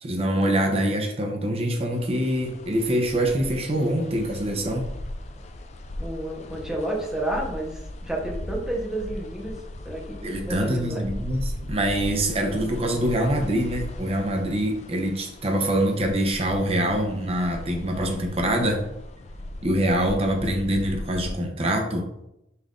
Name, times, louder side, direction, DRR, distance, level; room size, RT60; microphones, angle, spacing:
voice 1, 0.0-4.9 10.2-18.8 19.6-22.1, right 1 dB, 35° right, 3 dB, 0.7 m, -24 dB
sound 1, 1.9-21.3, left 1 dB, 40° left, 0.4 m, -38 dB
voice 2, 6.0-9.6 9.8-11.1, right 1 dB, 5° right, -2 dB, 0.8 m, -31 dB
5.5 x 2.6 x 3.7 m, 0.86 s
head